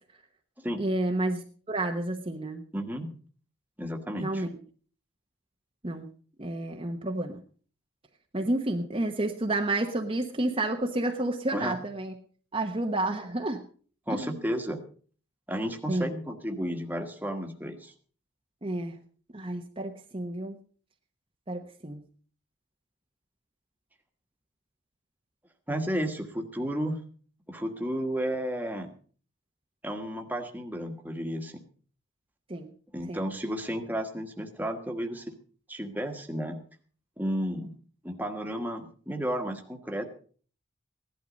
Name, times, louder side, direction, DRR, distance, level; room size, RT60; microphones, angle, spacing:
voice 1, 0.8-2.6 4.2-4.6 5.8-6.1 6.4-7.4 8.3-12.1 12.5-13.6 14.1-14.4 15.9-16.1 18.6-19.0 19.3-20.6 21.5-22.0 32.5-32.7 33.1-33.2, right 1 dB, 30° right, 2 dB, 1.0 m, -30 dB
voice 2, 2.7-3.1 3.8-4.4 11.5-11.8 14.1-14.8 15.5-17.9 25.7-27.0 27.5-28.9 29.8-31.6 32.9-35.3 35.7-36.6 37.2-37.7 38.0-40.1, equal, 10° right, 4 dB, 1.5 m, -32 dB
16.5 x 11.5 x 5.2 m, 0.43 s
head